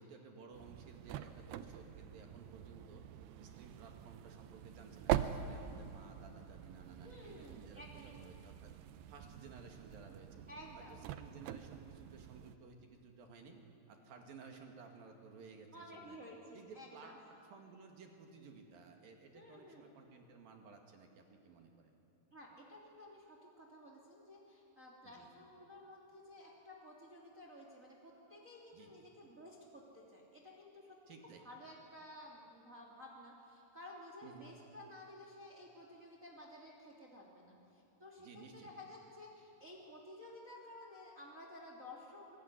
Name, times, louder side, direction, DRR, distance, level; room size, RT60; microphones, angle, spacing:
voice 1, 0.0-3.0 3.4-8.7 9.1-10.5 10.7-13.6 13.9-16.2 16.5-22.0 25.0-25.3 28.7-29.1 31.1-31.5 34.2-34.5 38.2-38.8, right 4 dB, 60° right, 3 dB, 3.5 m, -56 dB
sound 1, 0.5-12.6, right 11 dB, 75° right, 2.7 m, -44 dB
voice 2, 7.0-8.3 10.5-11.0 15.7-17.2 19.3-19.9 22.3-42.4, left 1 dB, 20° right, -1 dB, 2.7 m, -54 dB
26.5 x 21.5 x 9.9 m, 2.7 s
omnidirectional pair, 5.2 m